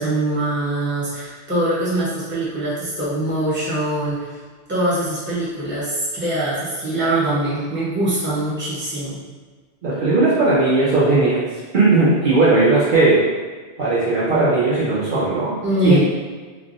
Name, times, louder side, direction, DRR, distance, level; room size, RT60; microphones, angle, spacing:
voice 1, 0.0-4.4 4.7-9.2 15.0-15.1 15.6-16.0, right 1 dB, 10° right, -9 dB, 0.7 m, -23 dB
voice 2, 9.8-11.4 11.7-13.2 13.8-15.5 15.8-16.0, right 3 dB, 55° right, -9 dB, 0.7 m, -17 dB
3.2 x 2.2 x 2.5 m, 1.4 s
omnidirectional pair, 1.1 m